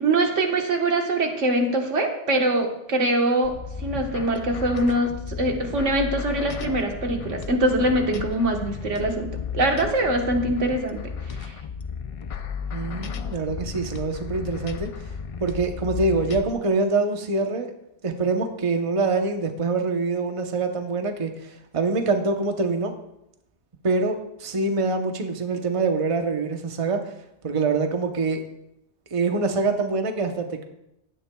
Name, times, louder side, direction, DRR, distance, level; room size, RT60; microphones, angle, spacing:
voice 1, 0.0-3.5 3.8-11.0 11.3-11.5, right 1 dB, 85° right, 3 dB, 1.6 m, -23 dB
sound 1, 3.4-16.5, left 6 dB, 55° left, 0.3 m, -34 dB
voice 2, 12.7-14.9 15.4-17.7 18.0-22.9 23.8-27.0 27.4-28.4 29.1-30.6, right 3 dB, 30° right, 5 dB, 0.8 m, -25 dB
15.5 x 11.0 x 2.3 m, 0.83 s
omnidirectional pair, 1.2 m